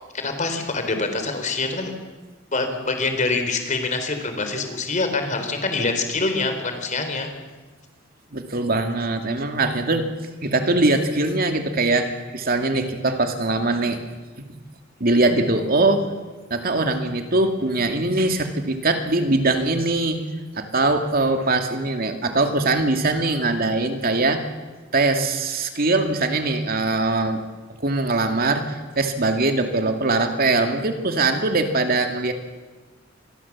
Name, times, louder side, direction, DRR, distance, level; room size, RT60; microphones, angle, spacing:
voice 1, 0.1-1.9 2.5-7.3, left 3 dB, 40° left, 6 dB, 3.9 m, -25 dB
voice 2, 8.3-10.1 10.4-14.0 14.4-14.5 15.0-16.0 16.5-20.2 20.5-24.4 24.9-27.4 27.8-32.3, right 2 dB, 50° right, 6 dB, 2.4 m, -22 dB
26.5 x 22.0 x 7.4 m, 1.3 s
head